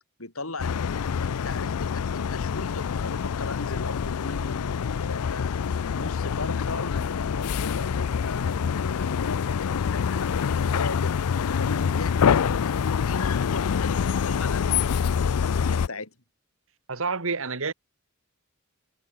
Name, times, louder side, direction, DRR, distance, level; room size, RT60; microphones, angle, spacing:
voice 1, 0.2-15.0 15.4-16.1, left 3 dB, 70° left, 5.9 m, -38 dB
sound 1, 0.6-15.9, left 7 dB, 90° left, 0.5 m, -26 dB
voice 2, 16.9-17.7, right 4 dB, 65° right, 2.1 m, -28 dB
head